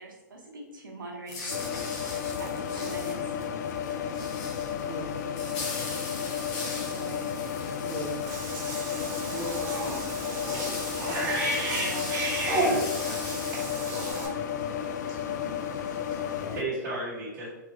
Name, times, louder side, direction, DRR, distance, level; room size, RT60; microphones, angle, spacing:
voice 1, 0.0-1.6 2.4-3.3 6.6-7.4 11.6-12.1, right 3 dB, 85° right, -1 dB, 1.2 m, -42 dB
sound 1, 1.3-14.1, left 3 dB, 35° left, 1.2 m, -41 dB
sound 2, 1.5-16.6, left 8 dB, 60° left, 0.4 m, -33 dB
voice 2, 4.9-5.3 7.8-8.2 8.9-11.7, right 3 dB, 10° right, -3 dB, 0.4 m, -42 dB
Cat / Bathtub (filling or washing), 8.3-14.3, right 1 dB, 30° right, 1.1 m, -32 dB
voice 3, 15.0-17.5, right 2 dB, 55° right, -7 dB, 1.4 m, -37 dB
3.9 x 2.8 x 3.1 m, 1.1 s
hypercardioid pair, 130°, 11 cm